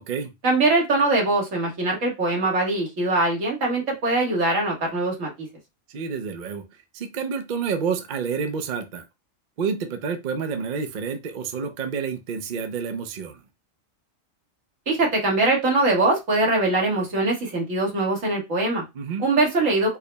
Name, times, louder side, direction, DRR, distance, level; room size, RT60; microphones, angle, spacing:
voice 1, 0.4-5.5 14.9-18.8 19.2-20.0, right 2 dB, 75° right, -1 dB, 1.8 m, -22 dB
voice 2, 5.9-9.0 9.6-13.4 18.9-19.3, right 6 dB, 55° right, 7 dB, 0.6 m, -29 dB
4.6 x 2.0 x 3.3 m, 0.22 s
omnidirectional pair, 1.4 m